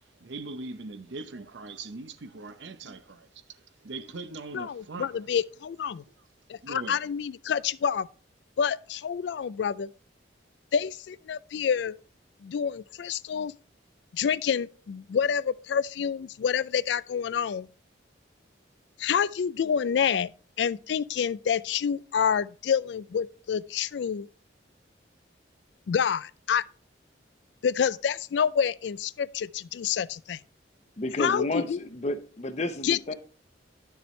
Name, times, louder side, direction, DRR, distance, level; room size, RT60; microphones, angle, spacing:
voice 1, 0.2-5.3 6.6-7.0, right 3 dB, 75° right, 0.7 m, -41 dB
voice 2, 4.5-6.0 6.5-8.1 8.6-9.9 10.7-12.0 12.4-13.5 14.1-17.7 19.0-20.3 20.6-24.3 25.9-26.6 27.6-30.4 31.2-31.8 32.8-33.1, left 7 dB, 70° left, 0.3 m, -28 dB
voice 3, 31.0-33.1, left 1 dB, 40° left, 0.8 m, -31 dB
10.5 x 6.9 x 3.2 m
head